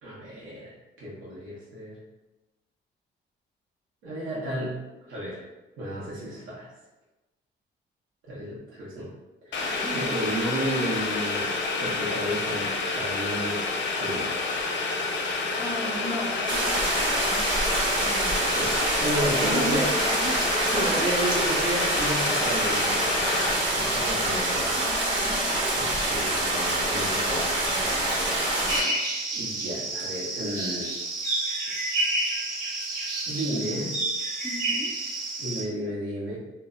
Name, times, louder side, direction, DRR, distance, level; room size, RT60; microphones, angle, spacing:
voice 1, 0.0-2.0 4.0-4.8 5.0-5.4 5.8-6.7 8.3-9.1 9.4-9.7 9.9-13.6 14.0-14.4 18.5-19.9 20.7-24.8 25.8-28.1 29.3-30.9 33.3-34.0 35.4-36.4, equal, 85° right, -7 dB, 0.7 m, -32 dB
Boiling, 9.5-23.5, left 3 dB, 65° left, 0.5 m, -29 dB
voice 2, 9.6-10.2 15.6-17.5 18.0-18.6 19.2-21.3 24.8-25.4 34.4-34.9, equal, 5° right, -4 dB, 0.4 m, -35 dB
sound 1, 16.5-28.8, right 1 dB, 70° right, 1.0 m, -26 dB
sound 2, 28.7-35.6, right 2 dB, 45° right, 0.8 m, -29 dB
2.1 x 2.0 x 3.5 m, 1.1 s
cardioid pair, 90°, 20 cm